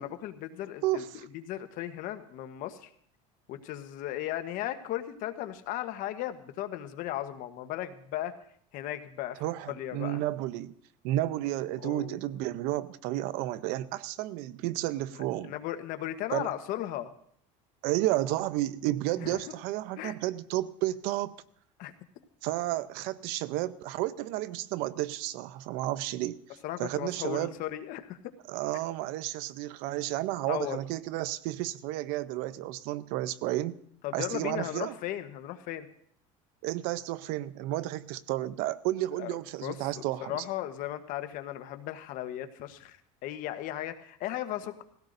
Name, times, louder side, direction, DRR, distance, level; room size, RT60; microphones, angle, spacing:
voice 1, 0.0-1.0 1.3-2.9 3.5-8.3 8.7-10.2 11.8-12.2 15.1-17.1 19.2-19.4 20.0-20.1 21.8-21.9 26.6-28.2 30.5-30.8 34.0-35.9 39.2-39.3 39.6-44.8, left 13 dB, 60° left, 1.2 m, -36 dB
voice 2, 0.8-1.2 9.4-10.7 11.0-15.5 16.3-16.5 17.8-21.4 22.4-26.4 26.8-27.5 28.5-33.8 34.1-35.0 36.6-40.4, right 15 dB, 70° right, 0.7 m, -32 dB
20.0 x 16.0 x 2.7 m
supercardioid pair, 120°, 16 cm